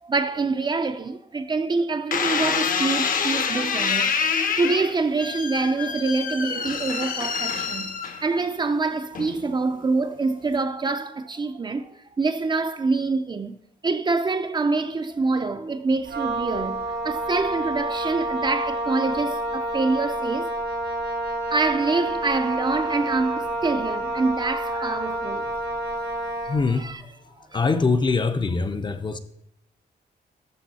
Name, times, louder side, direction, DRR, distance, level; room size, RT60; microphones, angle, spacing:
voice 1, 0.0-4.2 4.6-7.9 8.2-13.6 13.8-20.5 21.5-25.5 26.5-26.6 26.8-26.9, right 3 dB, 25° right, 0.5 m, -25 dB
squeaky door, 2.1-8.5 9.1-9.6, left 6 dB, 55° left, 0.9 m, -26 dB
Wind instrument woodwind instrument, 16.1-26.6, right 1 dB, 90° right, 2.9 m, -28 dB
voice 2, 26.4-29.2, left 4 dB, 25° left, 0.6 m, -24 dB
12.0 x 7.0 x 4.1 m
wide cardioid pair, 160°, 17 cm